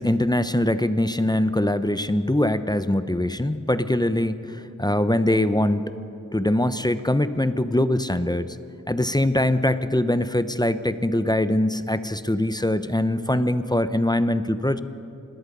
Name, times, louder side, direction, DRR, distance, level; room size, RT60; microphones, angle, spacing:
voice 1, 0.0-5.8 6.3-8.5 8.9-14.8, left 1 dB, 15° left, 11 dB, 0.8 m, -22 dB
26.0 x 20.0 x 5.4 m, 2.7 s
wide cardioid pair, 45°, 30 cm